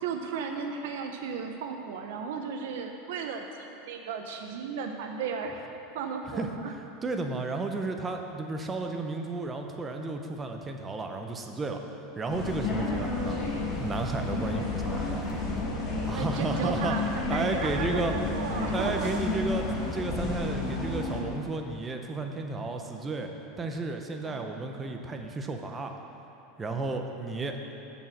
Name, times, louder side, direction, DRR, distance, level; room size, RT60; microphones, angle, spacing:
voice 1, 0.0-5.6 5.9-6.7 13.0-13.3 16.1-19.1 24.2-24.6, right 5 dB, 75° right, 4 dB, 0.7 m, -35 dB
voice 2, 7.0-11.8 12.2-15.2 16.0-17.0 17.3-18.1 18.7-19.7 19.9-23.3 23.6-25.9 26.6-27.6, right 3 dB, 15° right, 4 dB, 0.7 m, -33 dB
sound 1, 12.3-21.2, left 3 dB, 30° left, 1.9 m, -31 dB
7.0 x 6.1 x 7.6 m, 3.0 s
supercardioid pair, 145°, 0 cm